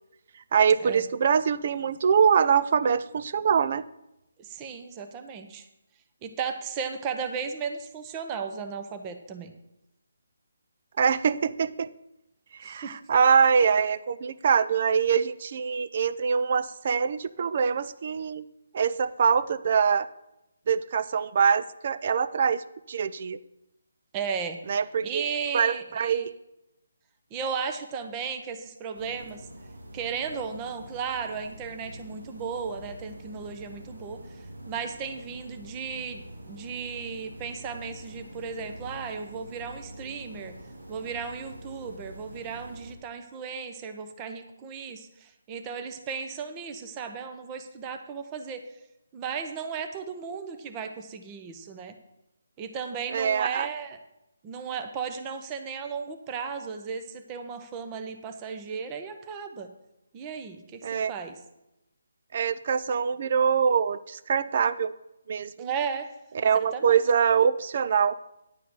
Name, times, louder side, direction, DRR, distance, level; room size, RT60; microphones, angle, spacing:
voice 1, 0.5-3.8 11.0-11.9 12.6-18.4 18.7-20.1 20.7-23.4 24.7-25.3 25.5-26.3 53.1-53.7 60.8-61.1 62.3-64.9 65.3-65.5 66.4-68.2, right 6 dB, 45° right, 14 dB, 0.5 m, -24 dB
voice 2, 4.4-5.7 6.2-9.5 12.6-13.0 24.1-24.6 25.0-26.3 27.3-29.4 29.9-40.5 40.9-48.6 49.1-51.9 52.6-54.0 54.4-59.7 60.1-61.4 65.6-66.1 66.7-67.0, right 6 dB, 20° right, 7 dB, 0.8 m, -35 dB
sound 1, 28.9-43.0, right 1 dB, 85° right, 2.1 m, -45 dB
10.5 x 4.9 x 7.8 m, 0.89 s
figure-of-eight pair, 160°, 0 cm